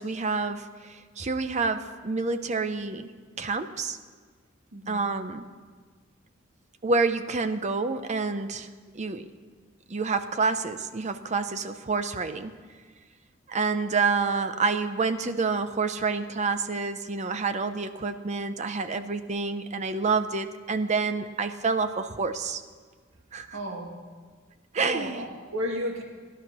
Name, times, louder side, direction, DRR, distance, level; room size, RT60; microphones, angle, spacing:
voice 1, 0.0-3.1 3.4-4.0 4.9-5.5 6.8-8.7 8.9-9.3 9.9-12.6 13.5-22.6 23.3-23.6 24.7-25.3, right 4 dB, 35° right, 10 dB, 0.6 m, -28 dB
voice 2, 4.7-5.0 23.5-23.9 24.8-26.0, equal, 75° right, 1 dB, 2.2 m, -33 dB
17.0 x 11.0 x 6.0 m, 1.5 s
head